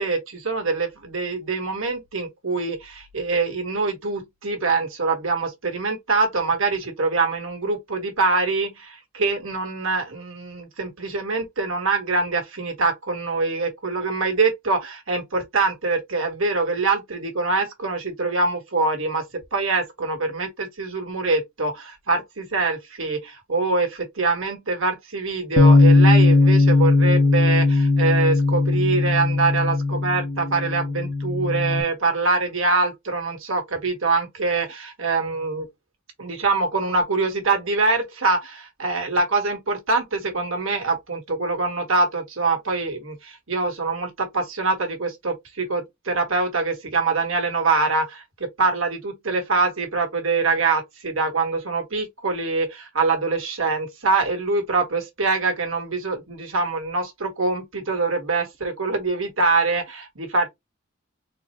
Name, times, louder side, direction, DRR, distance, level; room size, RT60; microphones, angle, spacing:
voice 1, 0.0-35.7 36.2-60.5, right 3 dB, 70° right, 1.4 m, -24 dB
Bass guitar, 25.6-31.8, left 3 dB, 45° left, 0.7 m, -18 dB
4.0 x 2.1 x 4.3 m
head